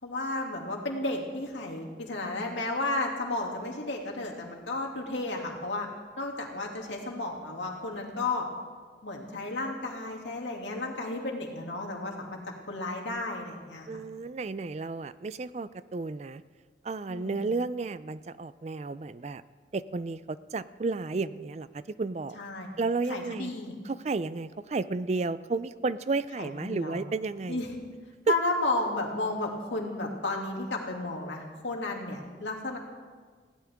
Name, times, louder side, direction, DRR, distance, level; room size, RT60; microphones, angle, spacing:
voice 1, 0.0-5.9 6.2-8.5 9.0-12.4 12.7-13.9 17.1-17.4 22.4-22.7 23.1-23.7 26.4-27.0 27.5-27.7 28.3-32.8, left 2 dB, 85° left, 0 dB, 2.5 m, -33 dB
voice 2, 13.9-16.4 16.8-19.4 19.7-22.4 22.8-23.5 23.9-27.6 28.3-28.4, right 3 dB, 35° right, 15 dB, 0.4 m, -32 dB
20.5 x 16.5 x 3.6 m, 1.5 s
head